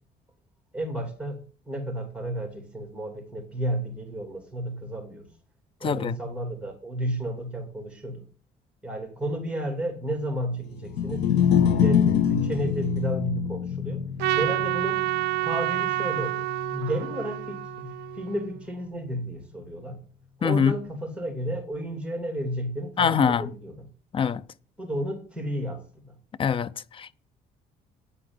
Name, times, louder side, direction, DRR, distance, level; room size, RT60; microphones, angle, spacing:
voice 1, 0.7-1.4 1.7-5.3 5.8-8.2 8.8-11.3 11.7-14.0 14.3-15.0 15.4-20.0 20.4-23.7 24.8-26.1, right 1 dB, 5° right, 2.8 m, -32 dB
voice 2, 5.8-6.1 20.4-20.7 23.0-23.5 24.1-24.4 26.4-27.1, left 7 dB, 30° left, 0.5 m, -24 dB
sound 1, 10.8-17.2, left 8 dB, 80° left, 1.4 m, -26 dB
Trumpet, 14.2-18.6, right 19 dB, 85° right, 0.4 m, -28 dB
10.0 x 4.8 x 7.9 m
cardioid pair, 110°, 17 cm